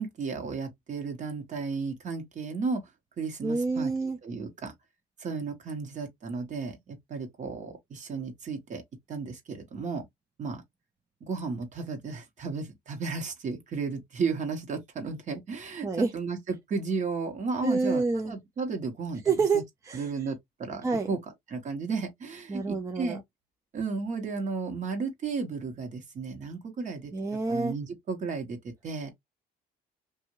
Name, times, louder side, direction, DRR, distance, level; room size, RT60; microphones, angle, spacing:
voice 1, 0.0-2.8 3.2-4.7 5.2-8.8 9.1-10.1 10.4-10.6 11.2-19.2 19.5-19.6 19.9-21.2 21.5-23.2 23.7-27.1 27.5-29.1, right 4 dB, 45° right, 1.3 m, -34 dB
voice 2, 3.4-4.2 15.8-16.1 17.6-18.3 19.3-20.1 20.8-21.1 22.5-23.2 27.1-27.7, right 4 dB, 20° right, 0.5 m, -28 dB
2.7 x 2.6 x 3.0 m
cardioid pair, 110°, 17 cm